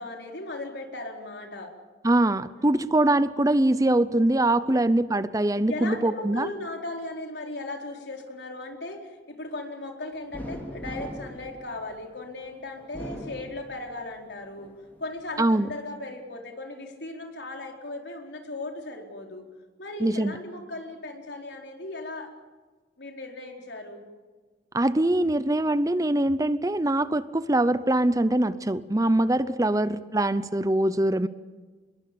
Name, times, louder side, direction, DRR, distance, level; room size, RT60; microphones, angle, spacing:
voice 1, 0.0-1.7 2.6-2.8 4.3-4.9 5.7-14.7 15.0-19.4 19.8-22.3 23.0-24.0 29.4-30.0, left 2 dB, 75° left, 2 dB, 4.4 m, -37 dB
voice 2, 2.0-6.5 15.4-15.7 20.0-20.3 24.7-31.3, right 1 dB, 20° right, 15 dB, 0.7 m, -23 dB
sound 1, 10.3-12.2 12.8-14.1 14.6-15.5, equal, 10° left, 4.7 m, -40 dB
26.0 x 22.0 x 7.0 m, 1.4 s
head